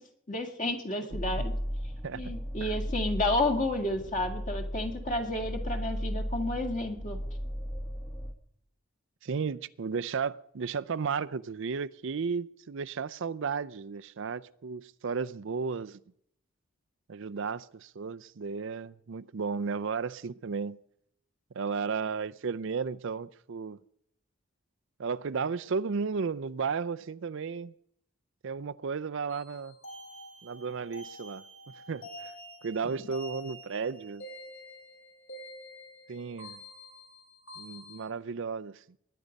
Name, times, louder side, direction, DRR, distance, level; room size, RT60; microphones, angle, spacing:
voice 1, 0.3-1.5 2.1-7.2, left 2 dB, 35° left, 2.1 m, -31 dB
sound 1, 1.1-8.3, equal, 20° left, 1.2 m, -35 dB
voice 2, 2.0-2.3 2.6-2.8 9.2-16.0 17.1-20.8 21.5-23.8 25.0-27.7 28.4-29.7 30.4-31.4 31.9-32.3 32.6-34.2 36.1-36.6 37.6-38.8, right 5 dB, 60° right, 0.5 m, -34 dB
sound 2, 29.3-38.0, equal, 65° left, 6.2 m, -47 dB
21.5 x 10.0 x 5.3 m
head